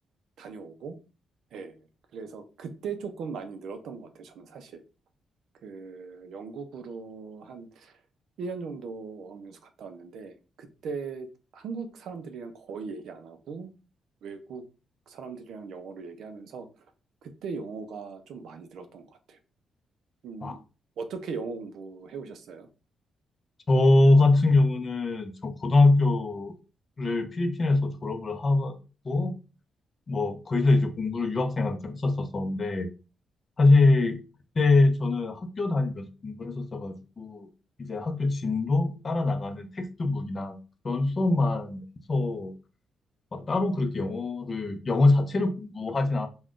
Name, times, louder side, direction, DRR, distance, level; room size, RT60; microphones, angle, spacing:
voice 1, 0.4-1.0 1.5-4.8 5.6-8.0 8.4-13.7 14.2-14.6 15.1-16.7 17.2-19.4 20.2-20.6 21.0-22.7, right 5 dB, 80° right, 8 dB, 0.4 m, -39 dB
voice 2, 23.7-26.5 27.0-28.8 29.0-29.3 30.1-32.9 33.6-34.2 34.6-37.5 37.8-40.6 40.8-41.8 42.1-42.5 43.3-46.3, left 2 dB, 35° left, 7 dB, 0.4 m, -24 dB
2.4 x 2.2 x 3.5 m, 0.33 s
cardioid pair, 130°, 0 cm